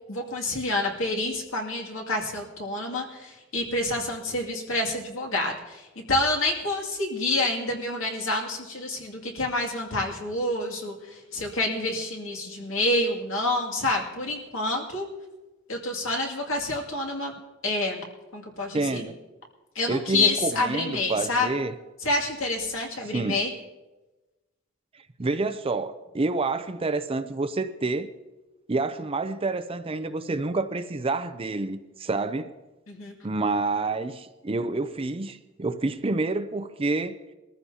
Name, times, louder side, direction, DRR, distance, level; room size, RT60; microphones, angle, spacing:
voice 1, 0.1-15.1 15.7-17.3 17.6-18.0 18.3-19.0 19.7-21.5 22.0-23.5 32.9-33.1, left 2 dB, 70° left, 2.4 m, -28 dB
voice 2, 18.7-19.1 19.9-21.7 23.1-23.4 25.2-28.1 28.7-32.5 33.2-37.1, right 3 dB, 25° right, 0.5 m, -28 dB
21.5 x 14.5 x 2.8 m
head